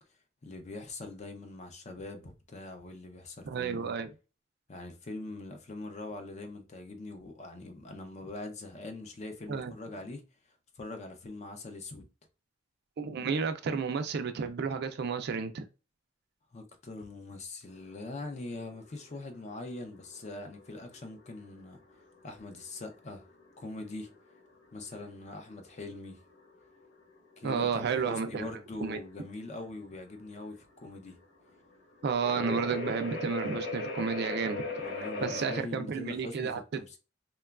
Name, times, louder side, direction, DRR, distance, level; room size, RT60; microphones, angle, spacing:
voice 1, 0.4-3.9 4.7-10.2 10.8-12.1 16.5-21.8 22.2-23.3 23.6-24.1 24.7-26.2 27.4-31.2 34.8-37.0, left 2 dB, 35° left, 0.5 m, -42 dB
voice 2, 3.4-4.1 9.5-9.7 13.0-15.6 27.4-28.5 28.8-29.0 32.0-34.6 35.2-36.6, right 5 dB, 55° right, 0.4 m, -31 dB
sound 1, 17.7-35.6, left 2 dB, 75° left, 1.0 m, -41 dB
2.9 x 2.2 x 2.3 m
head